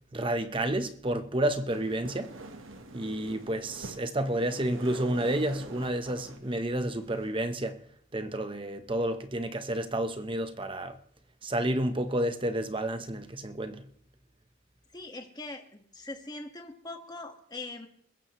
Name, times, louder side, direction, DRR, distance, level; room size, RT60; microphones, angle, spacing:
voice 1, 0.1-2.3 2.9-7.8 8.1-11.0 11.4-13.8, right 1 dB, 25° right, 1.0 m, -30 dB
sound 1, 1.7-7.4, right 2 dB, 75° right, 1.5 m, -45 dB
voice 2, 14.9-17.9, left 2 dB, 20° left, 1.7 m, -42 dB
29.0 x 15.0 x 3.2 m
head